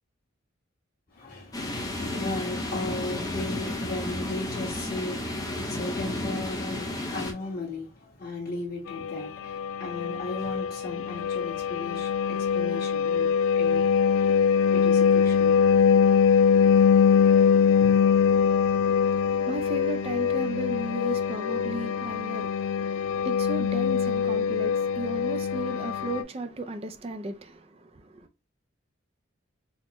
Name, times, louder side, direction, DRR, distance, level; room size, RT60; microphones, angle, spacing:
voice 1, 1.1-13.8 14.7-15.6 17.8-18.0, left 2 dB, 45° left, 1.4 m, -36 dB
sound 1, 1.5-7.3, left 1 dB, 20° left, 0.6 m, -32 dB
sound 2, 8.9-26.2, left 7 dB, 90° left, 0.4 m, -23 dB
voice 2, 19.0-28.3, right 2 dB, 30° right, 0.4 m, -35 dB
4.3 x 2.2 x 2.9 m
head